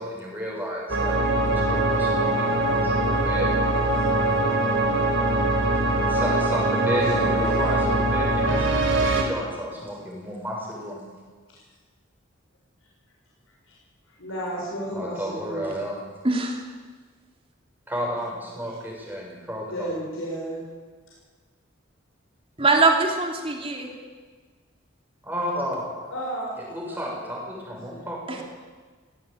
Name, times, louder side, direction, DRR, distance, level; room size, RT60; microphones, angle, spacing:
voice 1, 0.0-3.6 5.7-5.8 6.1-11.0 15.0-16.0 17.9-19.9 25.2-26.1 26.7-28.2, equal, 10° right, -3 dB, 6.9 m, -32 dB
sound 1, 0.9-9.2, right 2 dB, 65° right, 4.0 m, -22 dB
voice 2, 7.0-7.9 11.5-11.6 13.7-13.8 14.2-15.7 19.7-20.6 21.1-21.2 26.1-26.6 26.9-28.4, right 1 dB, 85° left, -4 dB, 6.4 m, -34 dB
voice 3, 16.2-16.6 22.6-23.9 28.3-28.4, right 3 dB, 25° right, 2 dB, 2.9 m, -22 dB
18.0 x 17.0 x 9.2 m, 1.4 s
head